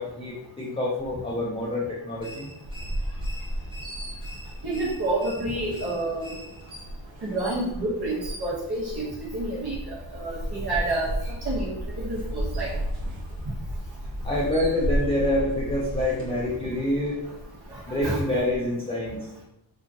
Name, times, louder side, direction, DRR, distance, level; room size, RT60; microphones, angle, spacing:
voice 1, 0.0-2.5 14.2-17.2 17.9-19.3, left 1 dB, 10° left, -5 dB, 0.5 m, -27 dB
sound 1, 2.2-6.8, left 1 dB, 10° right, 1.0 m, -46 dB
sound 2, 2.6-18.6, equal, 75° right, 1.1 m, -34 dB
voice 2, 4.6-6.4 7.2-9.0 9.3-12.7 17.7-18.2, right 2 dB, 55° right, -6 dB, 1.1 m, -29 dB
2.9 x 2.4 x 3.7 m, 0.83 s
wide cardioid pair, 90°, 46 cm